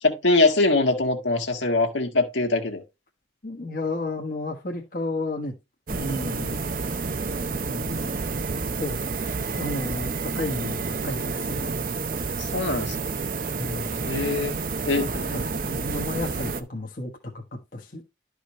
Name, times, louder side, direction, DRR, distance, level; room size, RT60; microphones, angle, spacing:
voice 1, 0.0-2.8 12.4-13.1 14.1-14.6 14.9-15.1, left 2 dB, 80° left, 1.8 m, -22 dB
voice 2, 3.4-5.5 5.9-6.6 7.4-8.4 8.8-9.0 9.6-12.2 13.5-14.0 15.0-18.0, left 2 dB, 45° left, 1.3 m, -33 dB
sound 1, 5.9-16.6, right 4 dB, 45° right, 0.7 m, -29 dB
12.0 x 5.0 x 3.1 m
head